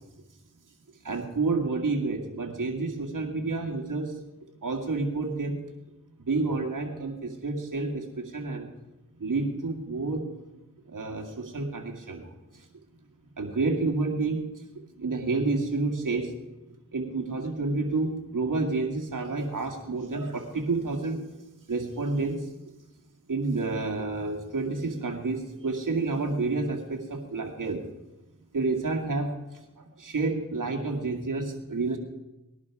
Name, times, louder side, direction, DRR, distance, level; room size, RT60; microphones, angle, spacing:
voice 1, 1.0-4.1 4.6-5.6 6.3-8.7 9.2-10.3 10.9-12.7 13.4-14.6 15.0-16.3 16.9-21.2 21.7-22.5 23.3-27.8 28.5-32.0, right 3 dB, 75° right, 2 dB, 2.1 m, -29 dB
19.5 x 11.5 x 4.9 m, 0.99 s
cardioid pair, 40°, 32 cm